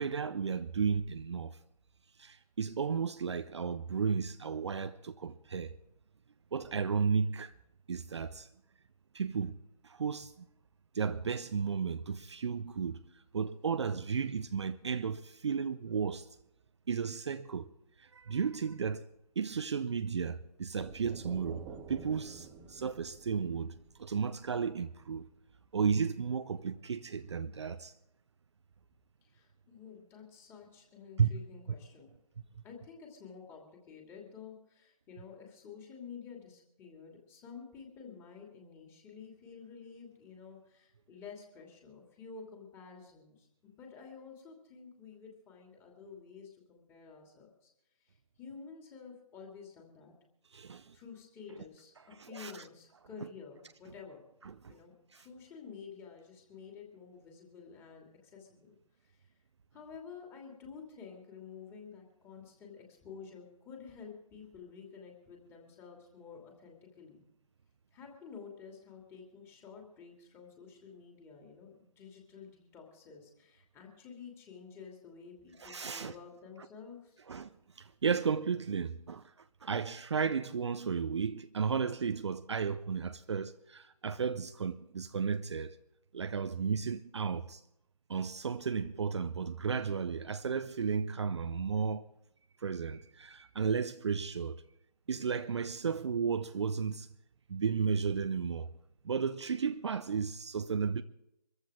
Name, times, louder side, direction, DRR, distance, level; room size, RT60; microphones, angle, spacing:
voice 1, 0.0-1.6 2.2-5.8 6.5-7.5 7.9-8.5 9.1-9.6 9.8-10.5 10.9-13.0 13.3-16.3 16.9-17.7 18.0-19.0 19.4-21.6 21.9-25.3 25.7-27.9 31.2-31.3 50.5-50.9 52.2-52.6 54.4-54.7 55.1-55.3 75.6-76.1 77.3-77.5 77.8-79.3 79.6-85.8 86.1-87.6 88.1-92.1 92.6-94.6 95.1-97.1 97.5-98.7 99.0-101.0, right 6 dB, 40° right, 0.7 m, -34 dB
sound 1, 20.8-24.5, right 6 dB, 10° right, 0.7 m, -49 dB
voice 2, 29.2-32.2 32.6-47.7 48.0-50.1 50.9-54.2 54.7-58.7 59.0-59.3 59.7-67.2 67.9-77.2, left 6 dB, 10° left, 2.7 m, -51 dB
24.5 x 14.5 x 3.7 m
figure-of-eight pair, 145°, 21 cm